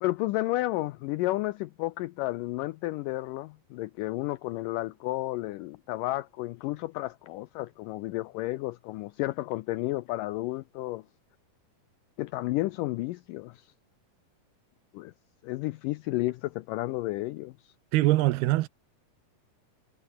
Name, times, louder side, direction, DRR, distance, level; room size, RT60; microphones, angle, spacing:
voice 1, 0.0-11.0 12.2-13.7 14.9-15.1 15.4-17.5, left 18 dB, 85° left, 1.9 m, -32 dB
voice 2, 17.9-18.7, right 17 dB, 90° right, 2.9 m, -23 dB
omnidirectional pair, 4.4 m